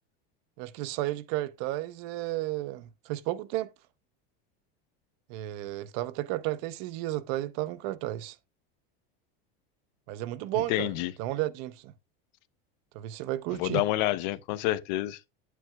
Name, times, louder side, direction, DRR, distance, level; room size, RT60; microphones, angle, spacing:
voice 1, 0.6-3.7 5.3-8.4 10.1-11.9 12.9-13.8, right 15 dB, 40° right, 0.6 m, -33 dB
voice 2, 10.7-11.1 13.6-15.3, left 16 dB, 50° left, 0.6 m, -28 dB
9.3 x 9.2 x 2.2 m
supercardioid pair, 180°, 29 cm